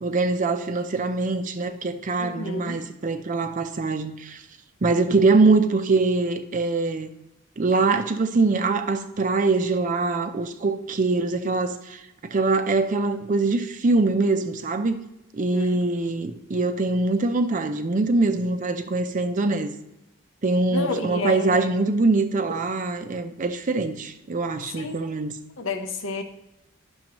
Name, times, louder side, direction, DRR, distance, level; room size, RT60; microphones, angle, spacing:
voice 1, 0.0-4.4 4.8-7.1 7.6-15.0 15.3-19.7 20.4-25.3, right 3 dB, 40° right, 0.5 m, -23 dB
voice 2, 2.2-2.8 15.5-15.8 20.7-21.7 24.7-25.0 25.6-26.2, left 3 dB, 70° left, 0.8 m, -30 dB
10.5 x 6.3 x 2.9 m
head